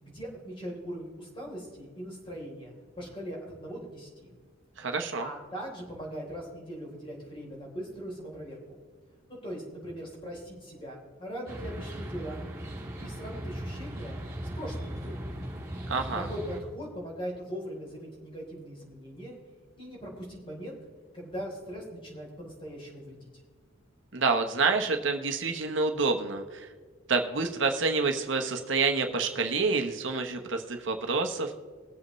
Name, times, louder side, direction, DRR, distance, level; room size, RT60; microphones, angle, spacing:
voice 1, 0.0-4.3 5.2-8.8 9.3-12.4 13.0-14.2 14.6-15.4 16.1-19.4 19.8-20.8 21.1-23.3, equal, 25° left, -2 dB, 3.6 m, -40 dB
voice 2, 4.8-5.3 15.9-16.3 24.1-26.7 27.1-31.5, right 4 dB, 70° right, 4 dB, 1.1 m, -28 dB
sound 1, 11.5-16.6, right 1 dB, 15° right, 2.7 m, -38 dB
21.0 x 7.8 x 3.2 m, 1.5 s
head